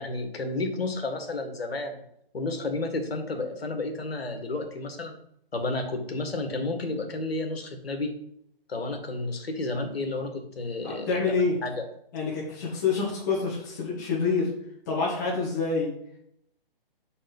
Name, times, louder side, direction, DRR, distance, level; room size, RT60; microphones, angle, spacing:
voice 1, 0.0-2.0 2.3-5.2 5.5-8.1 8.7-11.8, left 2 dB, 90° left, 5 dB, 1.9 m, -31 dB
voice 2, 10.8-11.5 12.1-14.5 14.9-15.9, left 4 dB, 20° left, -5 dB, 1.4 m, -27 dB
5.5 x 5.2 x 5.4 m, 0.73 s
hypercardioid pair, 175°, 29 cm